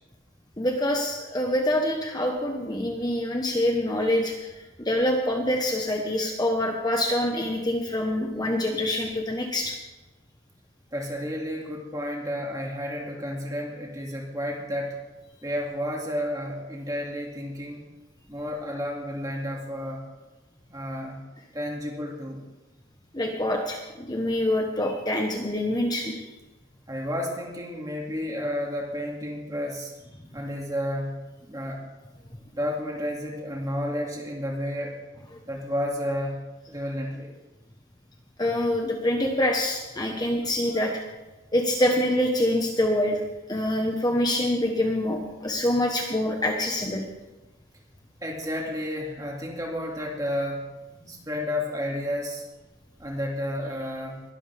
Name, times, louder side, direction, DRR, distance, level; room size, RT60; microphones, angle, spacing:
voice 1, 0.6-4.5 4.8-9.7 23.1-23.8 24.1-26.2 38.4-40.9 41.5-43.2 43.5-47.0, left 1 dB, 20° left, 1 dB, 1.1 m, -25 dB
voice 2, 10.9-15.0 15.4-17.9 18.3-20.0 20.7-21.2 21.5-22.4 26.9-29.9 30.3-31.1 31.5-31.8 32.5-35.0 35.5-36.4 36.7-37.3 48.2-50.7 51.0-52.4 53.0-54.2, equal, 15° right, -1 dB, 2.3 m, -31 dB
21.0 x 12.5 x 3.5 m, 1.1 s
head